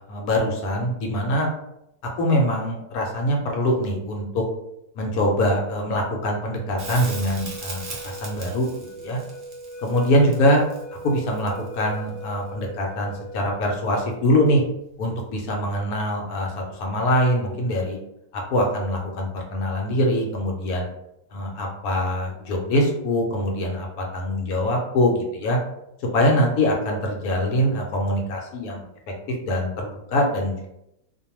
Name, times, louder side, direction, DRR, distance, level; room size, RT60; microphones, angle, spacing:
voice 1, 0.1-1.5 2.2-4.4 5.0-8.7 9.0-9.2 9.8-10.6 11.0-14.6 15.0-18.0 18.3-20.9 21.3-25.6 26.1-28.8 29.5-30.7, equal, 75° left, 1 dB, 1.1 m, -23 dB
sound 1, 6.5-14.3, right 2 dB, 45° left, 0.6 m, -40 dB
Crackle, 6.8-11.9 14.6-14.7, right 3 dB, 55° right, 0.6 m, -39 dB
2.6 x 2.2 x 2.9 m, 0.82 s
omnidirectional pair, 1.6 m